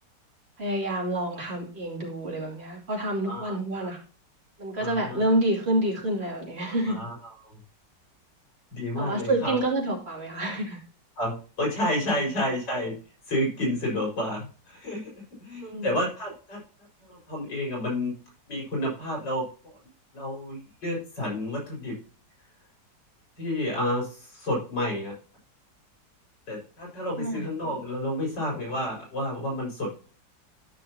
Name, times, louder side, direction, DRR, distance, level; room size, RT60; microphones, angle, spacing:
voice 1, 0.6-4.0 4.6-7.0 9.0-10.8 15.6-16.0 27.2-27.5, right 1 dB, 35° right, -2 dB, 3.0 m, -28 dB
voice 2, 3.3-3.9 4.8-5.2 6.9-7.6 8.7-9.6 11.2-13.0 13.3-16.6 17.0-18.1 18.5-19.8 20.1-21.9 23.4-25.1 26.5-29.9, left 1 dB, 85° left, -2 dB, 5.5 m, -30 dB
12.5 x 6.0 x 2.8 m, 0.37 s
omnidirectional pair, 1.9 m